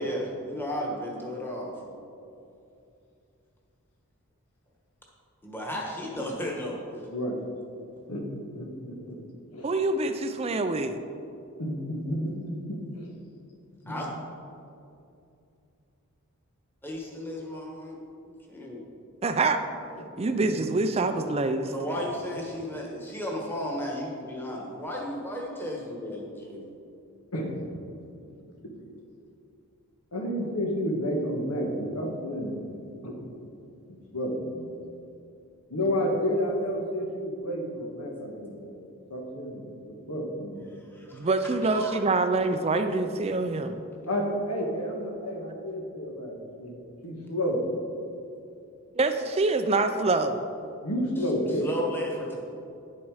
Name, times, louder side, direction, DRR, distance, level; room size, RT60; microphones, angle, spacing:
voice 1, 0.0-2.0 5.4-6.8 13.9-14.1 16.8-18.0 18.3-18.8 21.7-26.7 40.7-41.3 41.7-41.9 51.6-52.3, equal, 10° left, -2 dB, 1.3 m, -34 dB
voice 2, 8.5-9.2 9.5-9.7 11.6-13.1 13.8-14.0 20.0-20.6 21.9-22.0 22.5-22.7 27.3-27.6 28.6-28.7 30.1-33.3 33.9-34.7 35.7-40.6 44.1-46.8 47.0-47.6 50.8-51.7, equal, 90° left, 1 dB, 1.6 m, -31 dB
voice 3, 9.6-11.0 19.2-19.6 20.2-21.7 41.1-43.8 49.0-50.4, right 3 dB, 25° right, 8 dB, 0.4 m, -25 dB
10.0 x 7.2 x 4.8 m, 2.6 s
head